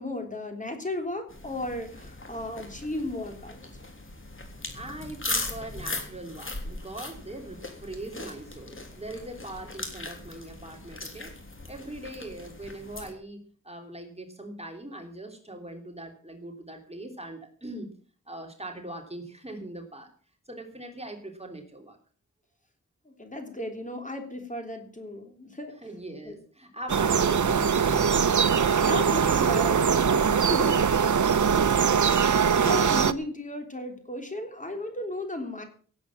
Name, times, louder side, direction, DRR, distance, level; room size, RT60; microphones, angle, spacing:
voice 1, 0.0-3.6 23.1-25.8 26.2-26.3 28.8-30.8 31.8-35.6, left 1 dB, 25° left, 4 dB, 3.5 m, -35 dB
sound 1, 1.3-13.1, left 2 dB, 40° left, 3.4 m, -39 dB
voice 2, 4.7-11.3 11.7-17.9 18.3-20.1 20.5-22.0 25.8-28.1 30.3-30.4, right 1 dB, 20° right, 3 dB, 3.1 m, -41 dB
sound 2, 26.9-33.1, right 6 dB, 65° right, 0.9 m, -22 dB
17.5 x 8.6 x 7.2 m, 0.43 s
wide cardioid pair, 100°, 32 cm